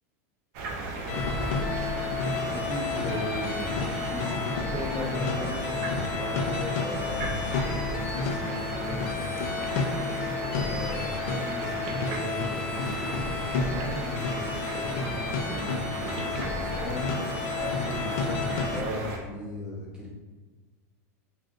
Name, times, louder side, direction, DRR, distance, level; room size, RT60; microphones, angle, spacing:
sound 1, 0.5-19.2, right 3 dB, 55° right, 0.6 m, -35 dB
sound 2, 1.1-18.8, left 4 dB, 60° left, 0.4 m, -31 dB
voice 1, 2.4-9.9 10.5-20.1, left 1 dB, 10° right, -5 dB, 0.9 m, -37 dB
2.5 x 2.4 x 3.7 m, 1.3 s
supercardioid pair, 140°, 8 cm